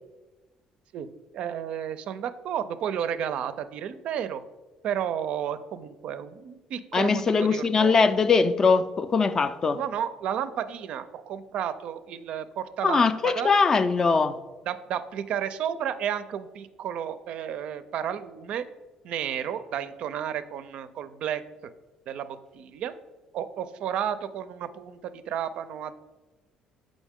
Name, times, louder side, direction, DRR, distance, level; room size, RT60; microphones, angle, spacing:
voice 1, 1.3-4.4 4.8-8.0 9.7-13.5 14.7-18.6 19.0-21.4 22.1-22.9 23.3-25.9, right 9 dB, 60° right, 0.4 m, -32 dB
voice 2, 6.9-9.8 12.8-14.4, left 4 dB, 25° left, 0.3 m, -21 dB
7.2 x 5.1 x 3.6 m
cardioid pair, 145°, 2 cm